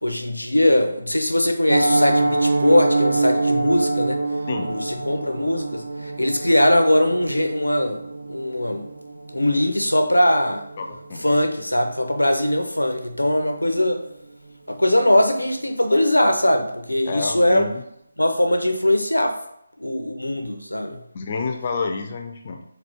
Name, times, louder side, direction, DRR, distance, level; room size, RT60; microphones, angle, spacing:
voice 1, 0.0-4.2 4.6-8.0 8.3-8.9 9.3-10.6 11.2-14.0 14.7-17.7 18.2-19.4 19.8-21.0, left 1 dB, 80° left, 6 dB, 0.6 m, -20 dB
Piano, 1.7-12.6 12.9-13.1 13.4-13.5 13.9-14.1 14.5-14.6, right 2 dB, 55° right, 0.5 m, -25 dB
voice 2, 10.8-11.2 13.7-13.8 17.1-17.8 21.1-22.6, left 4 dB, 30° left, 4 dB, 0.4 m, -29 dB
4.1 x 2.4 x 3.4 m, 0.76 s
figure-of-eight pair, 155°, 0 cm